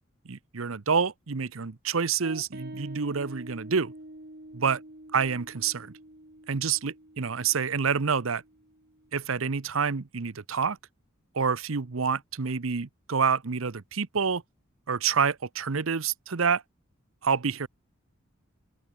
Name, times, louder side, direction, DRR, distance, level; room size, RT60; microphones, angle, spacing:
voice 1, 0.3-3.9 4.5-4.8 5.1-5.9 6.5-8.4 9.1-10.8 11.3-14.4 14.9-16.6 17.2-17.7, right 6 dB, 75° right, 0.8 m, -27 dB
sound 1, 2.2-9.1, right 1 dB, 50° right, 3.8 m, -46 dB
open air
head